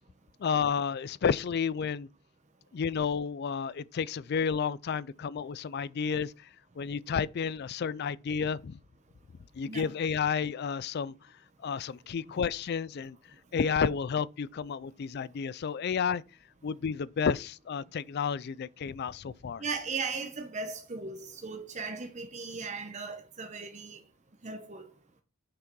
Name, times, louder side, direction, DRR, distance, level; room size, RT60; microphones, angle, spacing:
voice 1, 0.4-2.1 2.7-6.3 6.8-8.8 9.6-11.1 11.6-13.2 13.5-16.2 16.6-19.6, left 6 dB, 50° left, 0.3 m, -31 dB
voice 2, 19.6-24.0 24.4-24.9, right 4 dB, 30° right, 0.9 m, -37 dB
6.6 x 5.8 x 4.6 m
head